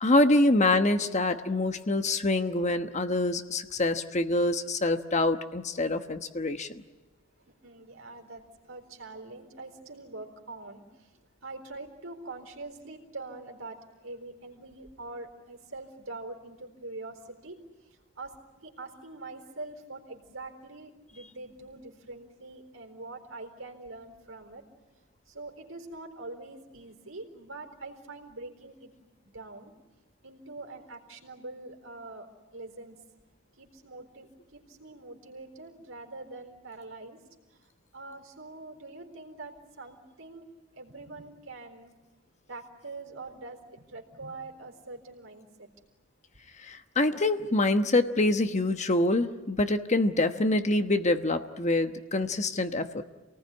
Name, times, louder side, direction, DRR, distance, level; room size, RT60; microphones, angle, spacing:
voice 1, 0.0-6.7 46.6-53.0, left 2 dB, 35° left, 8 dB, 1.1 m, -25 dB
voice 2, 7.5-17.6 18.2-18.4 18.6-24.6 25.3-28.9 29.3-29.7 30.2-33.0 33.5-37.2 37.5-40.5 40.7-41.9 42.5-45.7, right 2 dB, 85° right, 4 dB, 4.1 m, -44 dB
28.0 x 19.0 x 9.6 m, 1.2 s
head